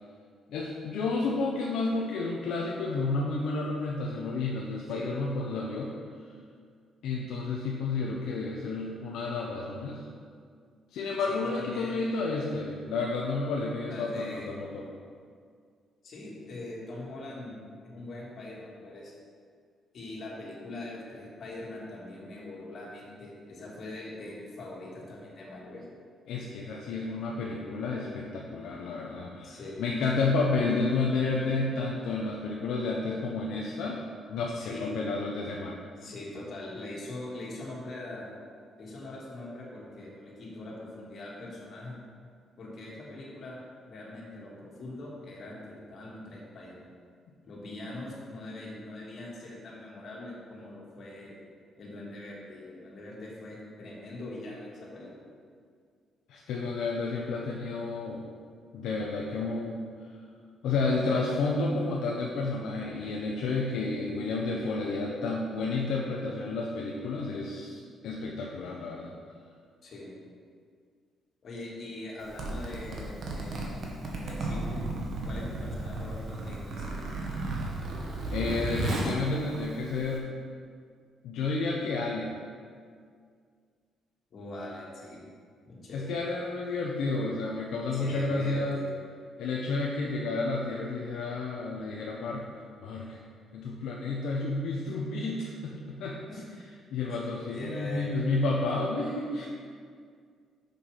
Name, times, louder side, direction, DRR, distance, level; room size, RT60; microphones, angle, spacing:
voice 1, 0.5-6.0 7.0-10.1 10.9-14.9 26.3-34.0 34.3-35.8 56.3-58.2 58.7-59.8 60.6-69.1 78.3-80.3 81.2-82.3 85.9-88.9 89.4-92.5 92.8-93.2 93.5-96.2 96.9-99.5, left 3 dB, 80° left, -2 dB, 0.7 m, -31 dB
voice 2, 11.3-12.1 13.9-14.6 16.0-17.6 17.8-19.1 19.9-25.8 29.4-29.8 34.5-35.1 36.0-38.3 38.8-42.0 42.6-43.6 43.9-46.8 47.4-51.4 51.8-55.3 69.8-70.1 71.4-74.8 75.2-77.1 84.3-85.3 85.7-86.2 87.9-88.9 96.3-96.5 97.5-98.1, left 2 dB, 55° left, -4 dB, 2.1 m, -42 dB
Zipper (clothing), 72.2-80.2, right 2 dB, 65° right, 1.4 m, -34 dB
6.7 x 5.7 x 5.0 m, 2.1 s
cardioid pair, 90°, 0 cm